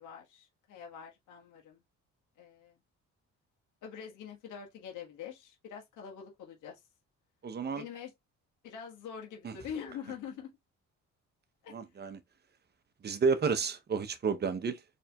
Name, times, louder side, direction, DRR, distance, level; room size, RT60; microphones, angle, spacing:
voice 1, 0.0-1.8 2.4-2.8 3.8-6.8 7.7-8.1 8.6-10.5 11.6-11.7, left 7 dB, 85° left, 1.4 m, -44 dB
voice 2, 7.4-7.8 9.4-9.5 11.7-12.2 13.0-14.8, right 5 dB, 35° right, 0.7 m, -31 dB
4.3 x 3.3 x 2.2 m
cardioid pair, 90°, 30 cm